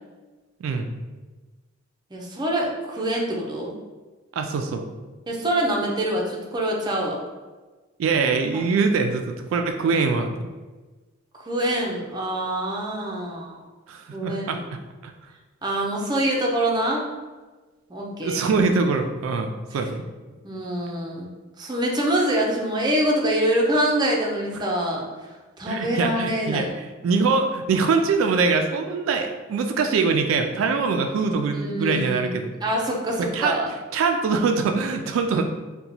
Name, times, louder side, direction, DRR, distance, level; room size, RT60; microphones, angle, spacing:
voice 1, 0.6-1.0 4.3-4.9 8.0-10.5 13.9-14.6 15.0-15.1 18.2-20.0 25.7-32.5 33.2-33.6 33.9-35.4, right 4 dB, 80° right, 5 dB, 0.3 m, -23 dB
voice 2, 2.1-3.7 5.3-7.2 8.5-8.6 11.4-13.6 14.1-14.7 15.6-17.1 17.9-18.4 20.4-21.3 21.6-25.0 25.6-26.7 31.5-32.3 32.6-33.7, right 1 dB, 20° right, -2 dB, 0.5 m, -25 dB
2.8 x 2.2 x 3.9 m, 1.3 s
head